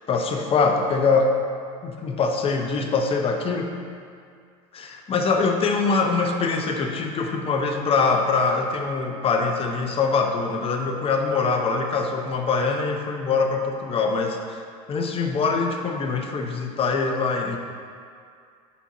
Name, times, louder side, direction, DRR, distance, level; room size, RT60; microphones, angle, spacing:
voice 1, 0.1-1.3 1.8-3.8 4.7-14.6 14.9-17.6, left 4 dB, 30° left, 3 dB, 0.7 m, -23 dB
4.5 x 4.1 x 5.6 m, 2.2 s
hypercardioid pair, 90°, 18 cm